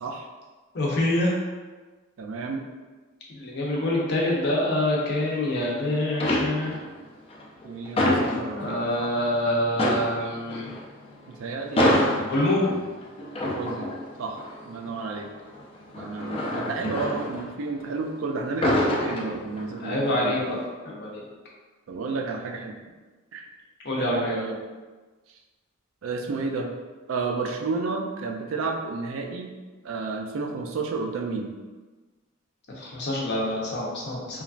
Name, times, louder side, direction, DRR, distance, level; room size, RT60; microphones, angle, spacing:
voice 1, 0.7-1.3 3.3-6.8 8.5-10.7 12.3-12.7 19.8-20.6 20.8-21.2 23.8-24.3 32.8-34.4, left 1 dB, 55° left, -4 dB, 0.7 m, -26 dB
voice 2, 2.2-2.6 7.6-9.1 11.4-12.4 13.5-13.9 14.2-14.4 14.6-15.3 16.0-20.5 21.9-22.8 23.3-23.5 24.0-24.6 26.0-26.7 27.1-29.5 29.8-31.5, right 4 dB, 80° right, 2 dB, 0.4 m, -31 dB
sound 1, 5.1-5.7 6.1-6.9 7.3-9.1 9.4-9.5 9.7-18.0 18.4-19.9 20.2-20.5, left 1 dB, 30° left, 0.3 m, -27 dB
3.1 x 2.3 x 2.4 m, 1.3 s
head